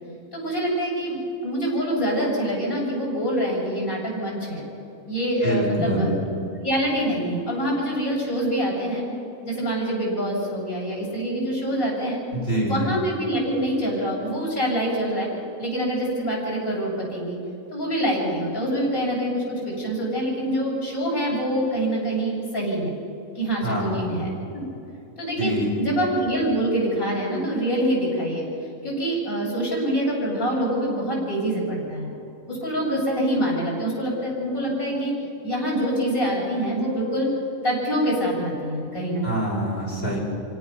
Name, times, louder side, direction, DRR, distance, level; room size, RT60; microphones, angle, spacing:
voice 1, 0.3-4.6 5.1-6.1 6.6-9.0 9.4-12.2 12.6-15.3 15.6-17.4 17.7-22.9 23.3-24.6 25.2-28.5 28.8-32.1 32.5-35.1 35.4-37.3 37.6-39.5, right 1 dB, 80° left, -5 dB, 6.6 m, -25 dB
voice 2, 5.4-6.1 12.3-12.9 23.6-24.2 25.4-25.8 39.2-40.2, right 1 dB, 45° left, -4 dB, 5.9 m, -25 dB
26.5 x 17.0 x 5.7 m, 2.9 s
omnidirectional pair, 1.4 m